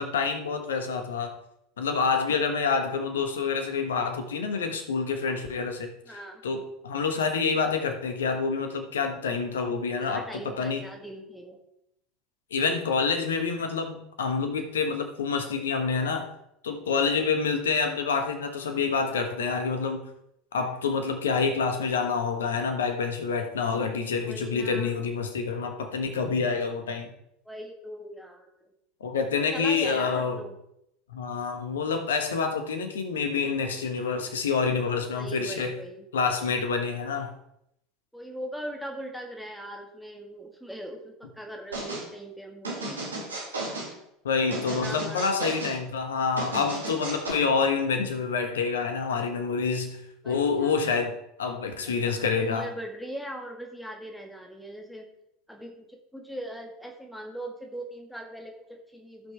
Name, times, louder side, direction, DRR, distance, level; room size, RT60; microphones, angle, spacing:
voice 1, 0.0-1.4 1.8-10.8 12.5-16.3 16.6-20.1 20.5-27.1 29.0-30.4 31.1-35.7 36.1-37.3 44.2-52.7, left 5 dB, 70° left, 7 dB, 1.3 m, -27 dB
voice 2, 6.1-6.4 10.0-11.6 24.2-25.0 27.5-28.7 29.5-30.6 35.1-36.1 38.1-43.0 44.5-45.6 50.2-51.0 51.8-55.1 55.5-59.3, right 1 dB, ahead, 2 dB, 1.6 m, -40 dB
sound 1, 41.7-42.1 42.6-43.9 44.5-45.8 46.4-47.3, right 2 dB, 80° right, 2.4 m, -34 dB
16.0 x 6.0 x 3.5 m, 0.79 s
figure-of-eight pair, 75°, 0 cm